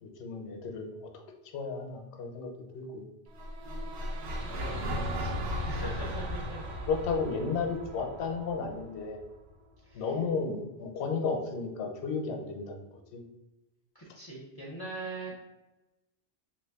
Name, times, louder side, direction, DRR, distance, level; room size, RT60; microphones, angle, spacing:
voice 1, 0.0-0.9 1.5-3.1 6.9-9.2 9.9-12.8 13.1-13.2, left 4 dB, 85° left, 3 dB, 0.8 m, -33 dB
sound 1, 3.3-9.5, equal, 75° right, 0.8 m, -36 dB
voice 2, 4.5-6.6 9.8-10.1 13.9-15.3, right 2 dB, 35° left, -3 dB, 0.4 m, -42 dB
3.0 x 2.5 x 3.4 m, 1.0 s
omnidirectional pair, 1.1 m